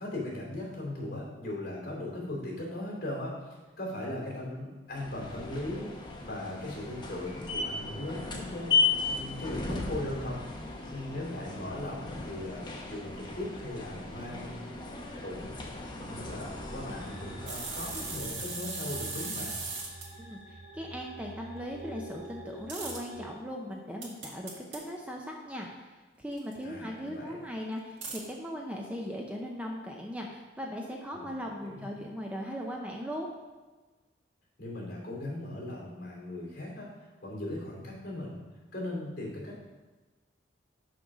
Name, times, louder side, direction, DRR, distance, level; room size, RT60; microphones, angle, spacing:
voice 1, 0.0-3.5 3.8-10.4 10.9-14.9 15.2-15.5 16.1-19.5 26.6-27.4 31.1-31.9 34.6-38.4 38.7-39.6, left 1 dB, 50° left, -3 dB, 2.7 m, -38 dB
sound 1, 4.9-18.4, left 4 dB, 25° left, 0.9 m, -35 dB
sound 2, 17.0-23.3, right 1 dB, 35° right, 1.3 m, -46 dB
sound 3, 17.5-20.1 22.7-23.0 24.0-24.8 26.4-26.5 28.0-28.2, right 3 dB, 90° right, 1.8 m, -38 dB
voice 2, 20.2-25.9 26.2-33.3, equal, 5° right, 0 dB, 0.6 m, -38 dB
6.2 x 5.4 x 6.0 m, 1.3 s
head